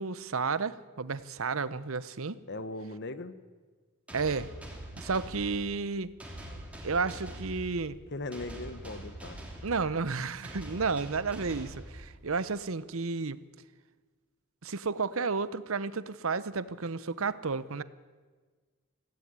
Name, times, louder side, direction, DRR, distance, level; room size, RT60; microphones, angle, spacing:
voice 1, 0.0-2.4 4.1-4.5 5.0-6.1 6.8-8.0 9.6-13.4 14.6-17.8, right 4 dB, 65° right, 16 dB, 0.8 m, -32 dB
voice 2, 2.5-3.3 8.1-9.4, left 2 dB, 50° left, 12 dB, 1.2 m, -38 dB
sound 1, 4.1-12.5, right 1 dB, 5° right, 3.1 m, -44 dB
18.0 x 15.5 x 9.6 m, 1.4 s
head